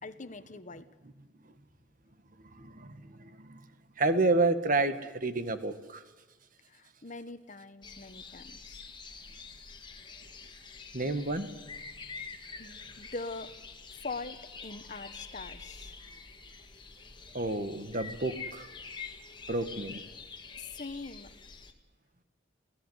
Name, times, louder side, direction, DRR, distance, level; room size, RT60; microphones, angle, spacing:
voice 1, 0.0-0.9 6.7-8.9 12.6-13.5 13.9-16.0 20.6-21.3, left 3 dB, 45° left, 12 dB, 1.2 m, -42 dB
voice 2, 2.6-3.6 4.0-6.0 10.9-11.5 17.3-18.7 19.5-20.0, right 2 dB, 50° right, 9 dB, 1.7 m, -30 dB
sound 1, 7.8-21.7, left 5 dB, 25° left, 1.8 m, -46 dB
28.5 x 16.5 x 8.1 m, 1.2 s
head